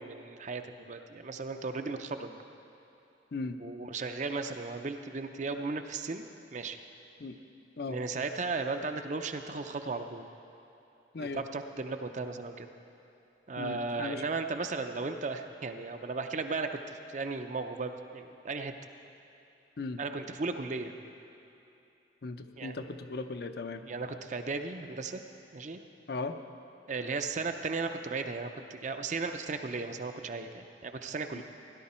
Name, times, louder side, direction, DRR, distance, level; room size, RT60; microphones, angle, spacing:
voice 1, 0.0-2.4 3.6-6.2 6.5-6.8 7.9-10.3 11.2-12.7 13.5-18.7 20.0-21.0 22.6-22.7 23.9-25.2 25.5-25.8 26.9-31.4, right 3 dB, 40° right, 7 dB, 0.5 m, -36 dB
voice 2, 13.6-14.2 19.8-20.0 22.2-23.8 26.1-26.4 31.4-31.5, left 3 dB, 60° left, 8 dB, 0.6 m, -37 dB
16.5 x 11.0 x 4.3 m, 2.8 s
head